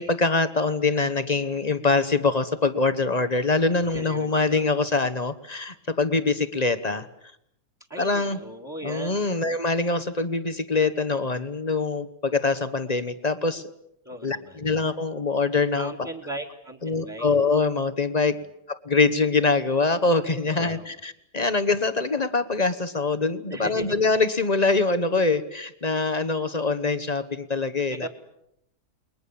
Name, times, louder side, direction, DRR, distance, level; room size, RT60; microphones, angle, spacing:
voice 1, 0.0-7.1 8.0-8.4 8.8-13.7 14.2-15.9 16.8-18.4 18.7-28.1, left 3 dB, 25° left, 11 dB, 1.1 m, -24 dB
voice 2, 3.8-4.7 7.9-9.3 14.0-14.6 15.7-17.3 18.3-18.4 20.4-21.0 23.5-24.0 27.9-28.1, right 1 dB, 10° right, 4 dB, 2.0 m, -38 dB
29.5 x 21.5 x 7.1 m, 0.77 s
omnidirectional pair, 1.8 m